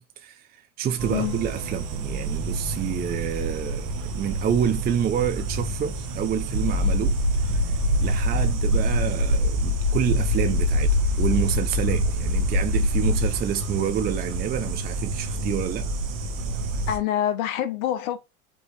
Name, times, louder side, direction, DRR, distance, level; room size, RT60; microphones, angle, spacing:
voice 1, 0.0-7.7 8.0-15.9, right 9 dB, 20° right, 0.5 m, -28 dB
sound 1, 1.0-17.0, right 2 dB, 45° right, 1.3 m, -30 dB
sound 2, 6.5-13.3, left 1 dB, 70° right, 1.8 m, -23 dB
voice 2, 16.9-18.2, left 11 dB, 70° left, 1.1 m, -26 dB
5.2 x 3.1 x 3.2 m
hypercardioid pair, 95°, 43 cm